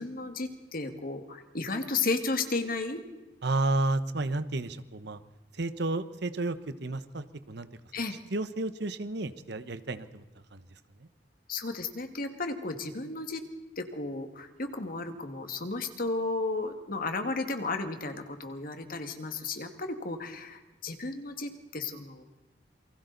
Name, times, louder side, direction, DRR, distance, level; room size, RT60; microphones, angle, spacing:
voice 1, 0.0-3.0 7.9-8.2 11.5-13.4 13.8-22.2, left 3 dB, 50° left, 6 dB, 2.0 m, -33 dB
voice 2, 3.4-5.2 5.5-7.7 8.3-10.2 10.5-10.6 11.0-11.1, right 2 dB, 65° right, 11 dB, 1.1 m, -31 dB
28.5 x 23.5 x 4.1 m, 1.1 s
head